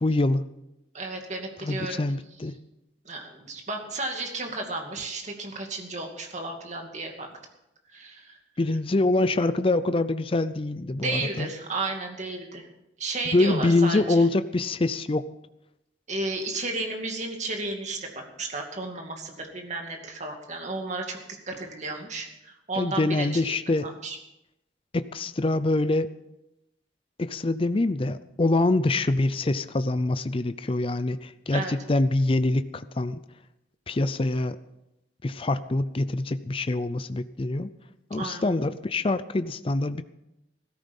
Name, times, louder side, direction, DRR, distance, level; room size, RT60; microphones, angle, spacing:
voice 1, 0.0-0.5 1.6-2.5 8.6-11.5 13.3-15.3 22.8-23.9 24.9-26.1 27.2-33.2 33.9-34.6 35.2-37.7 38.1-40.0, left 2 dB, 30° left, 12 dB, 0.5 m, -25 dB
voice 2, 0.9-2.0 3.0-7.4 7.9-8.4 11.0-12.7 13.0-14.2 16.1-21.2 21.5-23.5 23.8-24.2 31.5-31.7 38.2-38.5, right 2 dB, 40° right, 3 dB, 2.4 m, -33 dB
16.0 x 14.0 x 5.4 m, 0.89 s
head